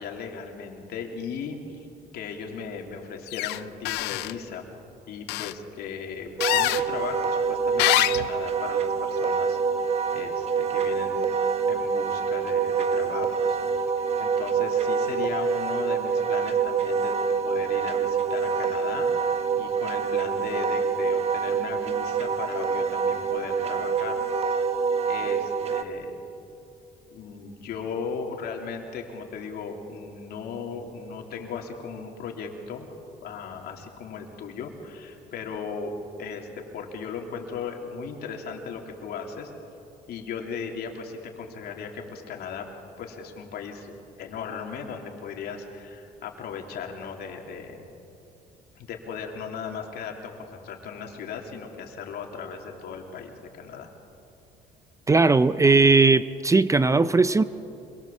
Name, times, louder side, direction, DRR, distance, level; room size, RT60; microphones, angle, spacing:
voice 1, 0.0-1.8 2.1-4.6 5.1-9.6 10.1-11.3 11.7-17.2 17.4-24.2 25.0-26.1 27.1-32.9 33.2-36.5 36.7-39.5 40.1-42.6 43.0-43.9 44.2-47.8 48.7-53.9, left 6 dB, 70° left, 1 dB, 3.4 m, -37 dB
sound 1, 3.3-3.6 3.8-4.3 5.3-5.5 6.4-6.8 7.8-8.3, left 18 dB, 90° left, 0.6 m, -24 dB
Wind instrument woodwind instrument, 6.4-25.8, right 6 dB, 40° right, 1.6 m, -26 dB
voice 2, 55.1-57.4, right 3 dB, 20° right, 14 dB, 0.6 m, -18 dB
26.5 x 22.0 x 7.4 m, 2.8 s
cardioid pair, 110°, 17 cm